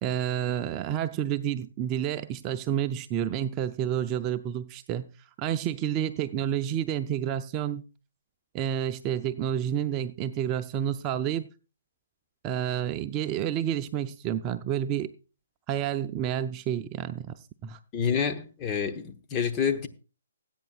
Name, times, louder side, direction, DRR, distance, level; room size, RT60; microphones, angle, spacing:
voice 1, 0.0-5.1 5.4-7.9 8.5-11.5 12.4-15.1 15.7-17.8, right 10 dB, 25° right, 0.5 m, -29 dB
voice 2, 17.9-19.9, left 7 dB, 20° left, 1.1 m, -28 dB
19.5 x 8.9 x 2.4 m
hypercardioid pair, 150°, 0 cm